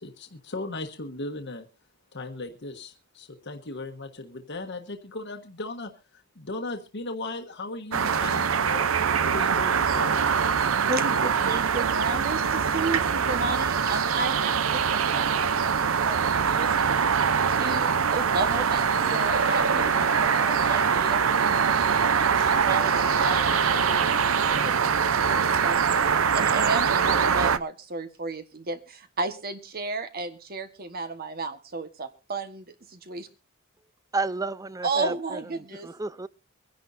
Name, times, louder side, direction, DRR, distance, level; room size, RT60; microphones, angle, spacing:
voice 1, 0.0-1.7 2.1-10.2, left 2 dB, 60° left, 4 dB, 1.4 m, -37 dB
sound 1, 7.9-27.6, right 6 dB, 80° right, 0.7 m, -23 dB
voice 2, 10.9-16.9 17.5-24.8 25.2-33.3 34.8-35.9, right 3 dB, 45° right, 9 dB, 1.4 m, -33 dB
sound 2, 18.5-21.3 22.3-24.9, left 3 dB, 80° left, 1.8 m, -39 dB
voice 3, 34.1-36.3, right 3 dB, 15° right, 17 dB, 0.5 m, -32 dB
24.0 x 10.5 x 2.7 m, 0.30 s
head